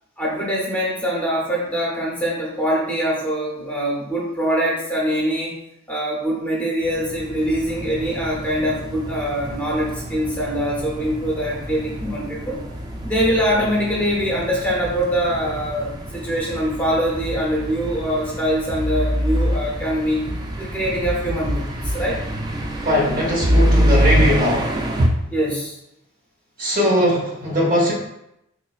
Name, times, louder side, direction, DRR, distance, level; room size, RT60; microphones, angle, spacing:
voice 1, 0.2-5.5 5.9-12.6 13.0-20.2 20.6-22.2 25.3-25.7, equal, 10° left, -5 dB, 0.7 m, -23 dB
sound 1, 6.8-25.1, equal, 20° right, 0.3 m, -25 dB
voice 2, 22.8-24.8 26.6-27.9, equal, 45° right, -3 dB, 0.8 m, -20 dB
3.7 x 3.1 x 2.3 m, 0.83 s
head